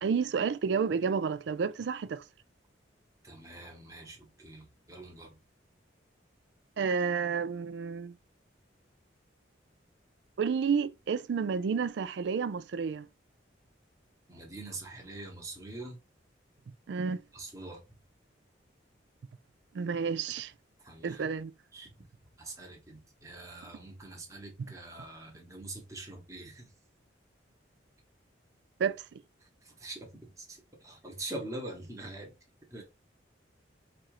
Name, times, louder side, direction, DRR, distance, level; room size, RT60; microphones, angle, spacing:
voice 1, 0.0-2.2 6.8-8.2 10.4-13.1 16.9-17.2 19.7-20.5 21.0-21.5 28.8-29.2, right 6 dB, 65° right, 0.3 m, -30 dB
voice 2, 3.2-5.3 14.3-16.0 17.3-17.8 20.8-21.3 21.7-21.9 22.4-26.7 29.6-32.3 32.7-32.8, right 2 dB, 15° right, 1.1 m, -44 dB
4.3 x 2.5 x 4.8 m
head